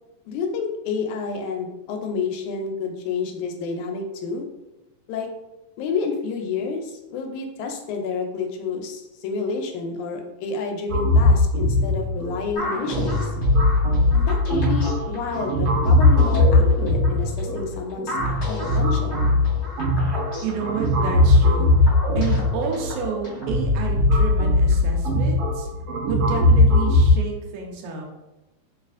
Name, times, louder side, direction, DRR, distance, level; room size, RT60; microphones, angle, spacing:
voice 1, 0.3-4.5 5.1-5.3 5.8-13.3 14.1-19.2, left 4 dB, 80° left, 3 dB, 1.9 m, -29 dB
sound 1, 10.9-27.1, left 2 dB, 70° right, 1.6 m, -20 dB
sound 2, 12.6-23.6, equal, 50° left, 1.4 m, -34 dB
voice 2, 20.4-25.7 26.0-28.1, right 5 dB, 90° right, 1 dB, 2.1 m, -30 dB
4.6 x 2.4 x 2.4 m, 1.0 s
omnidirectional pair, 3.5 m